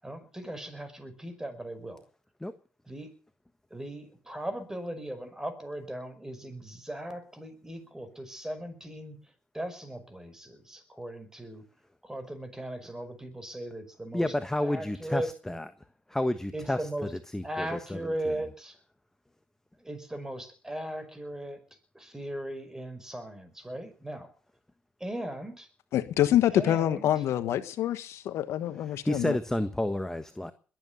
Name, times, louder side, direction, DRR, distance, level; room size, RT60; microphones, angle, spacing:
voice 1, 0.0-2.0 2.9-3.1 3.7-9.2 9.5-11.6 12.0-14.3 14.6-15.3 16.5-17.1 17.4-18.8 19.8-21.6 21.9-24.3 25.0-25.7 26.5-27.1, right 1 dB, 10° right, 5.4 m, -38 dB
voice 2, 14.1-15.7 16.1-16.8 17.3-18.1 29.1-30.5, left 1 dB, 10° left, 1.4 m, -30 dB
voice 3, 25.9-29.4, left 12 dB, 70° left, 1.2 m, -26 dB
21.5 x 9.3 x 7.0 m
supercardioid pair, 65°, 5 cm